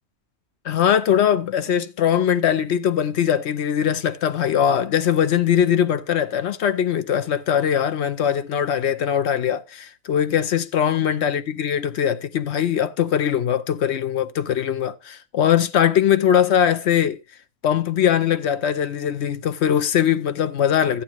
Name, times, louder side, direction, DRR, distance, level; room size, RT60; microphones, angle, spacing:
voice 1, 0.6-17.2 17.6-21.0, left 9 dB, 60° left, 0.8 m, -21 dB
14.0 x 8.4 x 3.0 m
omnidirectional pair, 1.6 m